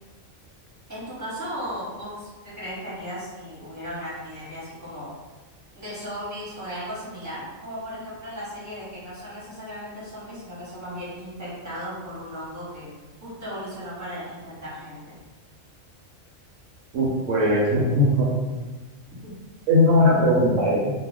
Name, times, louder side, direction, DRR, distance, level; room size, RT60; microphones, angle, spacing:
voice 1, 0.9-5.1 5.7-12.9 13.2-15.1 19.2-19.3, equal, 15° right, -9 dB, 1.1 m, -36 dB
voice 2, 16.9-18.3 19.7-20.9, left 1 dB, 75° right, -4 dB, 0.9 m, -19 dB
2.4 x 2.3 x 3.4 m, 1.2 s
omnidirectional pair, 1.4 m